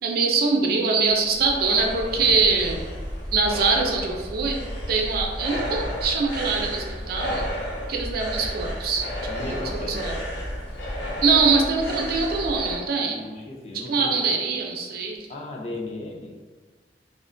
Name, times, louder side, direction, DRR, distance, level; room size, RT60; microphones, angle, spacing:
voice 1, 0.0-2.9 3.3-4.6 4.9-7.4 7.9-9.1 9.6-10.1 11.2-13.2 13.9-15.2, right 4 dB, 55° right, 1 dB, 0.4 m, -23 dB
sound 1, 1.0-12.8, equal, 85° left, 0.6 m, -32 dB
voice 2, 9.3-10.0 13.0-14.4 15.3-16.5, left 2 dB, 35° left, -1 dB, 0.4 m, -36 dB
2.4 x 2.1 x 2.5 m, 1.4 s
head